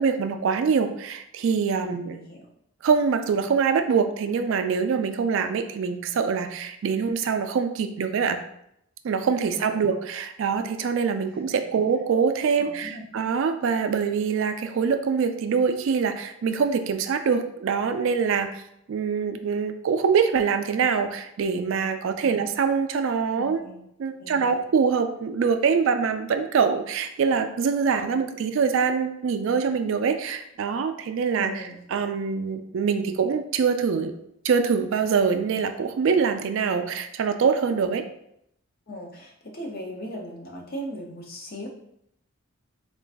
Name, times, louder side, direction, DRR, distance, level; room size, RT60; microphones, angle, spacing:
voice 1, 0.0-2.2 2.8-8.4 9.0-18.6 18.9-23.6 24.0-31.6 31.9-34.1 34.4-38.0, right 6 dB, 60° right, 8 dB, 0.3 m, -24 dB
voice 2, 1.8-2.4 9.5-9.8 11.5-11.6 12.6-13.1 22.2-22.3 23.4-23.8 24.2-24.6 31.3-31.8 38.9-41.7, equal, 45° left, 0 dB, 0.7 m, -38 dB
3.8 x 2.4 x 3.4 m, 0.75 s
head